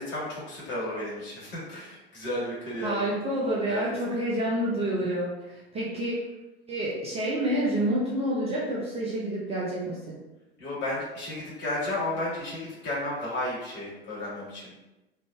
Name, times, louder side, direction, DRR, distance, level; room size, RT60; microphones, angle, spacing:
voice 1, 0.0-3.1 3.4-3.9 10.6-14.7, left 1 dB, 40° left, -7 dB, 1.5 m, -33 dB
voice 2, 2.8-6.2 6.7-10.2, right 1 dB, 20° right, -5 dB, 0.6 m, -28 dB
3.2 x 2.5 x 2.3 m, 1.0 s
figure-of-eight pair, 75°, 30 cm